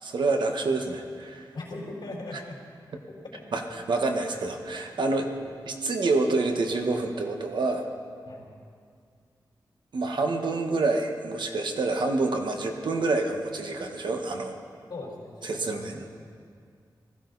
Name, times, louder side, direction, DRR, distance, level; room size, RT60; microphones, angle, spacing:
voice 1, 0.0-1.5 3.5-5.3 5.7-7.9 9.9-14.6 15.4-16.1, right 3 dB, 75° right, 4 dB, 1.3 m, -27 dB
voice 2, 1.5-2.6 3.1-3.4 5.2-5.3 8.3-8.5 14.9-16.0, left 2 dB, 65° left, -2 dB, 3.9 m, -40 dB
20.0 x 14.5 x 4.0 m, 2.1 s
wide cardioid pair, 135°, 8 cm